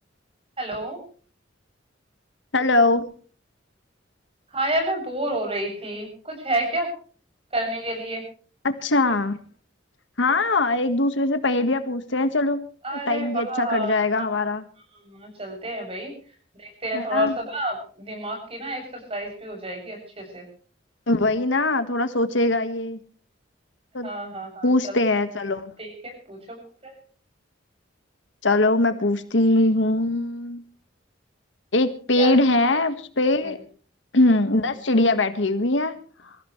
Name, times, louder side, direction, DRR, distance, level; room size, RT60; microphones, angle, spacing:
voice 1, 0.6-1.0 4.5-6.9 7.5-8.2 12.8-14.3 15.0-16.1 16.6-20.4 24.0-25.0 25.8-26.9 32.2-32.4 33.4-33.5, right 1 dB, 30° right, 3 dB, 7.5 m, -30 dB
voice 2, 2.5-3.1 8.6-9.4 10.2-12.6 12.9-14.6 16.9-17.4 21.1-23.0 23.9-24.1 24.6-25.7 28.4-30.6 31.7-33.6 34.1-36.0, left 2 dB, 75° left, 10 dB, 1.6 m, -21 dB
25.5 x 15.5 x 3.2 m, 0.42 s
head